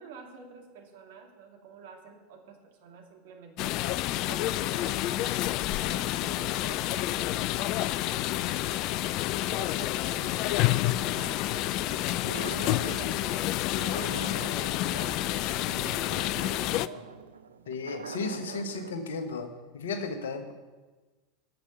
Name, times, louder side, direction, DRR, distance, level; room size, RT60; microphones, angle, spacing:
voice 1, 0.0-3.8 4.3-8.9 9.4-16.2 16.4-17.1, right 5 dB, 60° right, 2 dB, 2.6 m, -48 dB
sound 1, 3.6-16.9, left 15 dB, 45° left, 0.4 m, -29 dB
sound 2, 12.2-13.3 13.7-18.9, right 6 dB, 75° right, 0.6 m, -42 dB
voice 2, 17.7-20.5, left 4 dB, 70° left, 7 dB, 1.4 m, -34 dB
9.7 x 8.0 x 9.6 m, 1.3 s
figure-of-eight pair, 80°, 0 cm